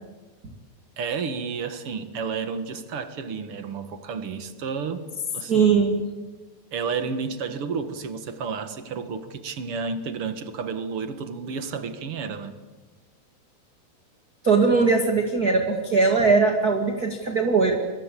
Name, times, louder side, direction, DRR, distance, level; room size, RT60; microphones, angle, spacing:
voice 1, 1.0-5.0 5.3-5.8 6.7-12.6, right 5 dB, 55° right, 10 dB, 1.6 m, -31 dB
voice 2, 5.5-5.9 14.4-17.8, right 4 dB, 35° right, 4 dB, 1.6 m, -20 dB
27.5 x 24.0 x 8.4 m, 1.3 s
omnidirectional pair, 4.9 m